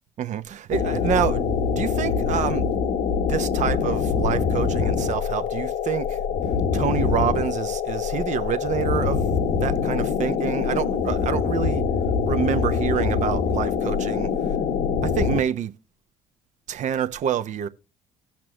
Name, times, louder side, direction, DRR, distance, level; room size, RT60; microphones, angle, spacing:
voice 1, 0.2-2.8 3.3-6.2 6.7-11.8 12.3-14.3 15.0-15.7 16.7-17.7, right 9 dB, 55° right, 0.9 m, -27 dB
sound 1, 0.7-15.4, left 6 dB, 60° left, 0.9 m, -24 dB
17.0 x 6.0 x 3.0 m
hypercardioid pair, 60°, 15 cm